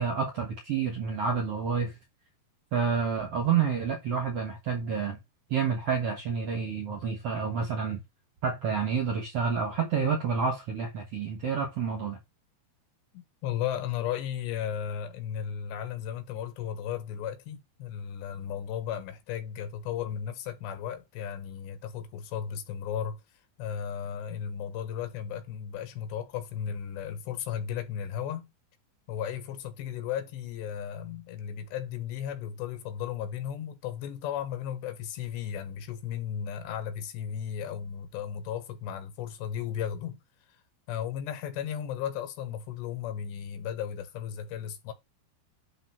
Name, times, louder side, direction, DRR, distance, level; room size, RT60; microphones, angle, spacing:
voice 1, 0.0-1.9 2.7-5.2 5.5-8.0 8.4-12.2, right 6 dB, 85° right, 1.3 m, -29 dB
voice 2, 13.1-23.2 23.6-28.5 29.1-40.2 40.9-44.9, left 9 dB, 85° left, 3.5 m, -35 dB
10.5 x 3.6 x 4.4 m
omnidirectional pair, 4.9 m